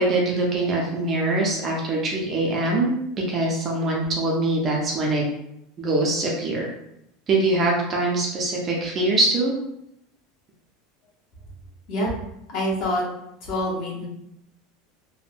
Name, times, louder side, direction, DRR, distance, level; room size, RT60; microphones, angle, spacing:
voice 1, 0.0-2.9 3.3-5.2 5.8-6.7 7.3-9.5, right 2 dB, 20° right, -2 dB, 0.4 m, -23 dB
voice 2, 12.5-13.0 13.4-14.1, left 1 dB, 40° left, -3 dB, 0.8 m, -26 dB
3.4 x 2.1 x 2.4 m, 0.80 s
supercardioid pair, 175°, 0 cm